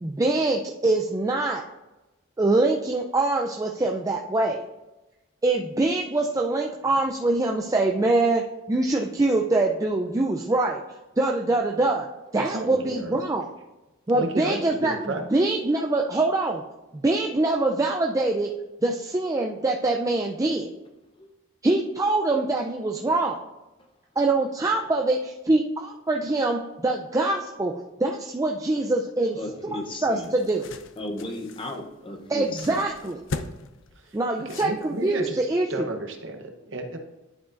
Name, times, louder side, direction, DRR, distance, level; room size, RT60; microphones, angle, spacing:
voice 1, 0.0-1.6 2.4-4.6 5.4-10.8 11.2-12.1 12.3-13.5 14.1-16.6 16.9-18.5 18.8-20.7 21.6-23.4 24.2-27.7 28.0-29.4 29.7-30.7 32.3-33.2 34.1-35.7, right 2 dB, 15° right, 1 dB, 0.3 m, -24 dB
voice 2, 12.3-13.2 14.1-15.3 34.0-34.2 34.4-35.4 35.7-37.0, right 2 dB, 60° right, 4 dB, 0.9 m, -32 dB
voice 3, 29.4-30.3 31.0-32.8, left 1 dB, 25° left, 4 dB, 0.7 m, -35 dB
sound 1, 29.8-35.2, left 3 dB, 65° left, 0.5 m, -40 dB
11.0 x 4.9 x 2.5 m, 1.0 s
head